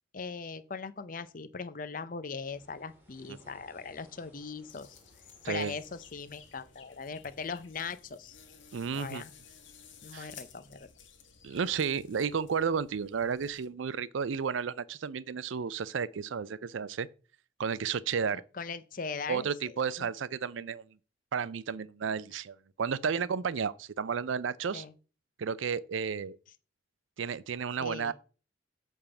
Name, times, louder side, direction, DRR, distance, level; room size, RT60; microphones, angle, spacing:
voice 1, 0.1-4.9 5.5-8.4 8.9-9.3 10.0-10.9 18.6-20.1 24.7-24.9 27.8-28.1, left 5 dB, 45° left, 0.6 m, -40 dB
sound 1, 2.4-7.7, equal, 10° right, 2.2 m, -63 dB
sound 2, 4.7-13.7, left 7 dB, 80° left, 1.5 m, -55 dB
voice 2, 8.7-9.2 10.1-10.3 11.4-17.1 17.6-18.4 19.3-20.8 21.3-24.8 25.4-26.4 27.2-28.1, right 6 dB, 85° right, 0.5 m, -32 dB
8.9 x 3.6 x 6.9 m
head